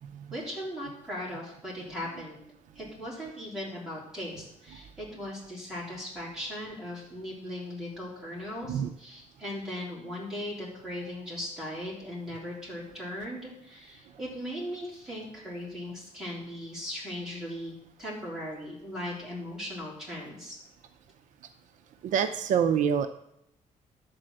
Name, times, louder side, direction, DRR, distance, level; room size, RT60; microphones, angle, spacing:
voice 1, 0.3-2.4 2.8-17.7 18.0-20.6, left 1 dB, 5° right, -7 dB, 3.7 m, -38 dB
voice 2, 22.0-23.1, right 8 dB, 70° right, 7 dB, 0.6 m, -26 dB
11.0 x 4.3 x 7.8 m, 0.80 s
cardioid pair, 175°, 13 cm